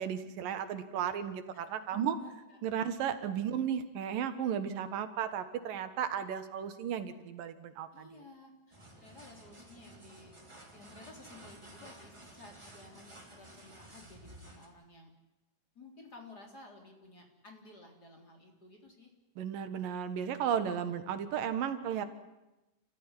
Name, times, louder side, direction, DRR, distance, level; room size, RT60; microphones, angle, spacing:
voice 1, 0.0-2.2 2.6-8.1 19.4-22.1, right 8 dB, 90° right, 10 dB, 3.2 m, -34 dB
voice 2, 1.9-2.6 7.9-10.3 10.7-15.1 15.8-19.1, left 3 dB, 30° left, 2 dB, 4.0 m, -54 dB
sound 1, 8.7-14.7, right 1 dB, 10° right, 2.7 m, -53 dB
29.0 x 15.0 x 9.9 m, 1.0 s
omnidirectional pair, 3.8 m